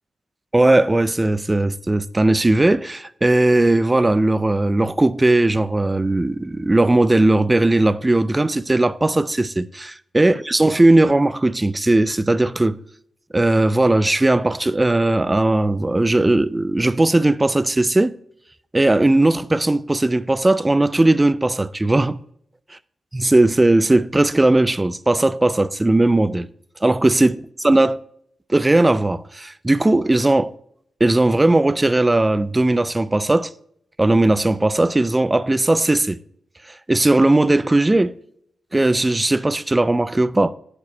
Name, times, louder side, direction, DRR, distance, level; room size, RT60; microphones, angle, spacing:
voice 1, 0.5-12.8 13.3-18.1 18.7-22.2 23.1-26.5 26.8-28.0 28.5-30.5 31.0-33.5 34.0-36.2 36.7-38.1 38.7-40.5, right 2 dB, 20° right, 0.4 m, -17 dB
9.3 x 5.1 x 4.3 m
cardioid pair, 50°, 0 cm